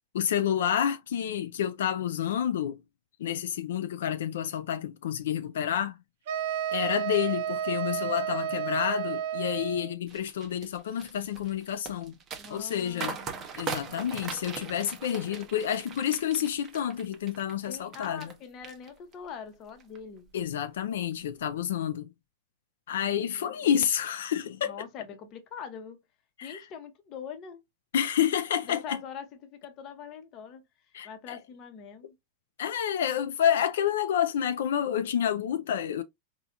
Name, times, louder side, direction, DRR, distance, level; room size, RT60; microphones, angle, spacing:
voice 1, 0.1-2.8 3.2-6.0 6.7-12.1 12.5-13.2 13.6-18.3 20.3-22.1 22.9-24.7 26.4-26.6 27.9-29.0 30.9-31.4 32.6-36.0, left 9 dB, 85° left, 0.4 m, -29 dB
sound 1, 6.3-9.9, right 9 dB, 60° right, 0.7 m, -31 dB
sound 2, 10.1-18.3 18.6-19.3 19.7-20.0, right 6 dB, 25° right, 0.7 m, -40 dB
voice 2, 12.4-13.5 17.7-20.3 23.3-23.8 24.6-26.0 26.4-27.6 28.6-30.6 31.0-32.2, left 7 dB, 35° left, 0.8 m, -43 dB
4.2 x 2.3 x 2.5 m
supercardioid pair, 150°, 0 cm